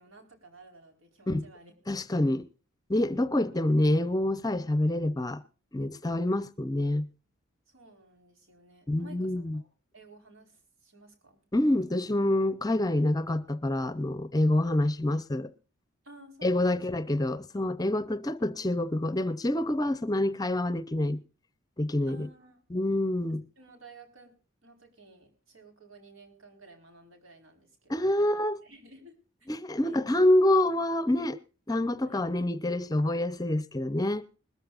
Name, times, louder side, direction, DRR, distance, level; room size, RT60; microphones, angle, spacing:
voice 1, 0.0-1.7 7.7-11.4 16.0-16.8 22.1-22.6 23.6-24.3 24.6-27.9 28.2-29.5 29.8-30.0 32.0-32.2, right 2 dB, 80° right, 4.5 m, -54 dB
voice 2, 1.9-2.4 2.9-5.4 5.7-7.1 8.9-9.6 11.5-15.5 16.4-21.2 21.8-22.3 22.7-23.4 27.9-28.6 29.5-31.4 31.7-34.2, left 1 dB, 20° left, 0.6 m, -27 dB
21.0 x 14.0 x 2.5 m
head